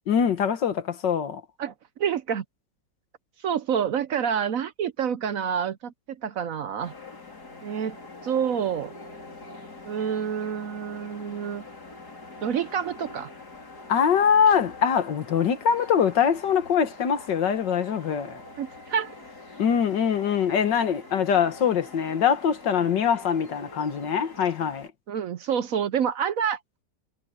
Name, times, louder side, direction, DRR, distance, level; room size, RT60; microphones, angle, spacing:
voice 1, 0.1-1.4 13.9-18.4 19.6-24.9, left 7 dB, 80° left, 2.0 m, -23 dB
voice 2, 2.0-2.4 3.4-6.9 7.6-8.0 8.2-8.9 9.8-11.6 12.4-13.3 18.6-19.1 25.1-26.6, right 8 dB, 60° right, 1.0 m, -28 dB
sound 1, 6.8-24.9, left 2 dB, 65° left, 4.8 m, -45 dB
omnidirectional pair, 1.9 m